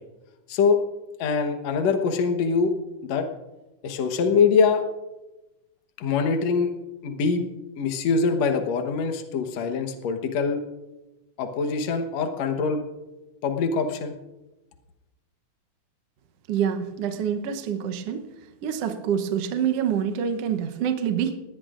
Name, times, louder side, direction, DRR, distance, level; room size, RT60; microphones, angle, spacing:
voice 1, 1.2-2.7 3.0-3.3 3.8-4.8 6.0-6.7 7.0-7.4 7.8-10.6 11.4-12.8 13.4-14.1, left 5 dB, 65° left, 5 dB, 2.3 m, -23 dB
voice 2, 16.5-18.2 18.6-21.4, right 8 dB, 65° right, 7 dB, 1.7 m, -26 dB
20.0 x 19.0 x 2.5 m, 1.0 s
omnidirectional pair, 3.5 m